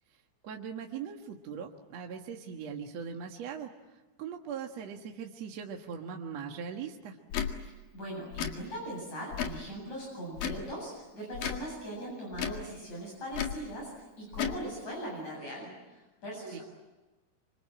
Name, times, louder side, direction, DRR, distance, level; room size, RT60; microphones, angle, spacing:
voice 1, 0.4-7.2 16.5-16.6, right 7 dB, 55° right, 2 dB, 2.2 m, -40 dB
Tick / Tick-tock, 7.3-7.5 8.3-8.6 9.3-9.6 10.3-10.7 11.3-11.6 12.3-12.6 13.3-13.6 14.3-14.6, left 8 dB, 65° left, 3.5 m, -33 dB
voice 2, 7.9-16.6, right 1 dB, 45° left, -2 dB, 9.2 m, -40 dB
27.0 x 25.5 x 7.7 m, 1.1 s
omnidirectional pair, 4.5 m